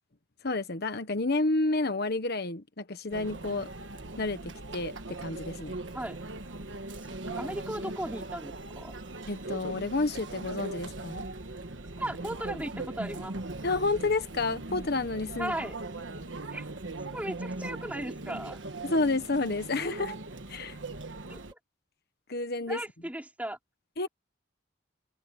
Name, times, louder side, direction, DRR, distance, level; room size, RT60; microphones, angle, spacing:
voice 1, 0.4-3.7 4.2-4.4 4.7-5.7 9.3-11.3 13.6-15.5 18.8-20.1 20.5-20.8 22.3-22.8 24.0-24.1, left 2 dB, 55° left, 1.3 m, -30 dB
Conversation / Chatter / Crowd, 3.1-21.5, right 2 dB, 70° right, 1.6 m, -40 dB
voice 2, 7.1-8.9 12.0-13.4 15.4-15.8 16.5-16.7 17.1-18.6 21.3-21.6 22.7-23.6, right 1 dB, 10° right, 5.0 m, -36 dB
head